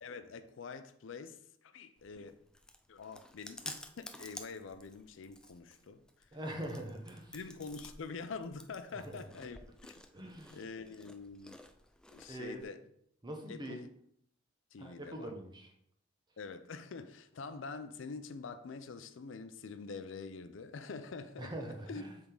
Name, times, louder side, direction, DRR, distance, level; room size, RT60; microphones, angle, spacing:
voice 1, 0.0-2.4 2.9-6.3 7.3-10.0 10.5-11.6 12.1-12.8 13.5-13.9 14.7-15.3 16.4-21.5 21.9-22.0, left 4 dB, 80° left, 0.5 m, -46 dB
Chewing mastication, 2.0-12.6, left 1 dB, 5° left, 0.3 m, -52 dB
voice 2, 6.3-7.3 8.9-9.2 10.1-10.6 12.3-12.6 13.2-13.8 14.8-15.7 21.4-22.2, right 1 dB, 25° right, 0.9 m, -43 dB
7.0 x 3.7 x 3.8 m
head